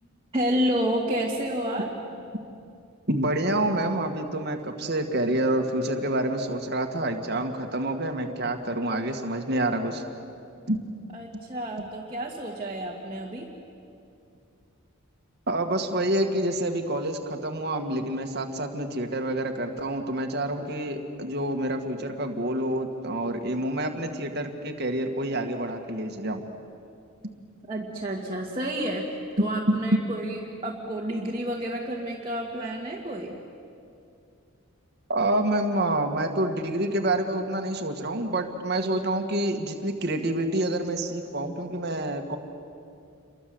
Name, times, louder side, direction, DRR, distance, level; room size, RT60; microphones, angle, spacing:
voice 1, 0.3-1.9 11.1-13.5 27.7-33.4, equal, 25° right, -3 dB, 2.1 m, -30 dB
voice 2, 3.1-10.0 10.7-10.8 11.3-11.4 15.5-26.5 29.7-29.8 35.1-42.4, right 1 dB, 50° right, 4 dB, 2.0 m, -27 dB
29.0 x 23.5 x 8.0 m, 2.5 s
head